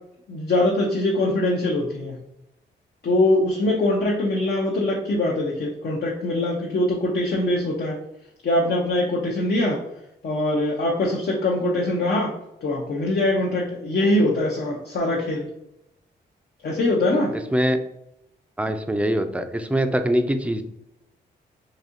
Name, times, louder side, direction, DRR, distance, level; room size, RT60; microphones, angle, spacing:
voice 1, 0.3-2.2 3.0-8.0 8.4-9.8 10.2-12.3 12.6-15.5 16.6-17.3, left 1 dB, 60° left, -1 dB, 0.7 m, -22 dB
voice 2, 17.5-17.8 18.6-20.6, equal, 5° right, 8 dB, 0.4 m, -23 dB
4.1 x 2.7 x 2.5 m, 0.84 s
cardioid pair, 55°, 19 cm